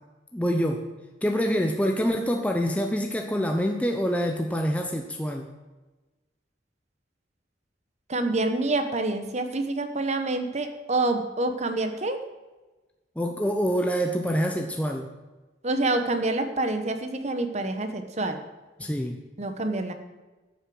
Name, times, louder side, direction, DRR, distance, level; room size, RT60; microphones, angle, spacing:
voice 1, 0.3-0.9 1.2-5.5 13.2-15.1 18.8-19.2, equal, 10° left, 3 dB, 0.7 m, -26 dB
voice 2, 8.1-12.2 15.6-18.4 19.4-19.9, right 2 dB, 40° right, 7 dB, 1.2 m, -27 dB
12.0 x 7.1 x 7.7 m, 1.2 s
head